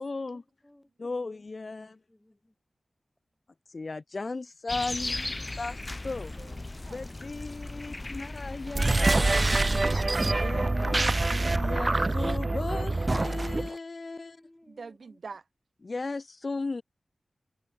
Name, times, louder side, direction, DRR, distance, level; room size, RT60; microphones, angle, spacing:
voice 1, 0.0-0.4 1.0-1.9 3.7-5.3 5.6-5.7 6.0-6.3 6.9-9.6 10.4-14.4 15.8-16.8, left 3 dB, 55° left, 0.3 m, -36 dB
voice 2, 0.6-1.2 1.6-2.6 14.0-15.2, left 1 dB, 15° left, 3.5 m, -59 dB
sound 1, 4.7-9.8, left 2 dB, 35° left, 0.8 m, -37 dB
voice 3, 6.4-7.1 9.1-10.8 14.7-15.4, right 4 dB, 80° right, 1.2 m, -46 dB
sound 2, 8.7-13.7, right 2 dB, 40° right, 0.3 m, -25 dB
wide cardioid pair, 55°, 0 cm